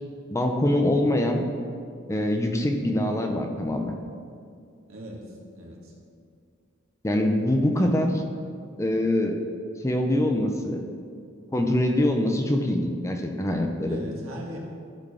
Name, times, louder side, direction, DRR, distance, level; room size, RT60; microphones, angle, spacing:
voice 1, 0.3-1.5 2.1-3.9 7.0-8.1 8.8-9.4 9.8-10.8 11.5-14.0, left 1 dB, 15° left, 3 dB, 0.7 m, -24 dB
voice 2, 4.9-5.9 7.7-7.9 13.8-14.6, equal, 80° right, -3 dB, 1.9 m, -40 dB
13.5 x 4.6 x 5.0 m, 2.3 s
head